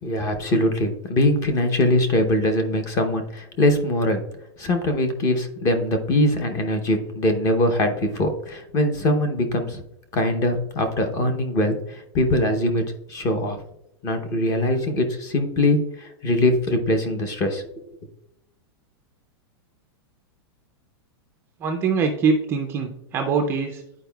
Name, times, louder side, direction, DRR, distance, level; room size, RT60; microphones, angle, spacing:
voice 1, 0.0-4.2 4.6-9.8 10.1-12.8 13.1-13.6 14.0-17.6, left 1 dB, 20° left, 7 dB, 0.7 m, -22 dB
voice 2, 21.6-23.8, right 5 dB, 15° right, 4 dB, 0.4 m, -23 dB
10.5 x 4.6 x 2.3 m, 0.82 s
supercardioid pair, 170°, 14 cm